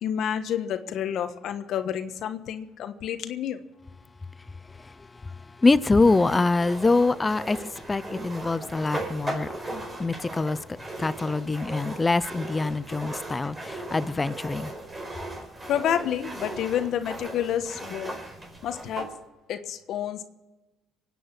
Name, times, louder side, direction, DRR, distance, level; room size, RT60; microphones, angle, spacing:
voice 1, 0.0-3.6 15.6-18.1 18.6-19.1 19.5-20.2, left 9 dB, 70° left, 1.2 m, -29 dB
voice 2, 5.6-7.6 7.9-9.5 10.0-10.6 11.0-13.5 13.9-14.7, left 3 dB, 25° left, 0.6 m, -24 dB
sound 1, 6.0-19.1, right 1 dB, 25° right, 5.2 m, -37 dB
23.5 x 9.3 x 6.1 m
supercardioid pair, 80°, 0 cm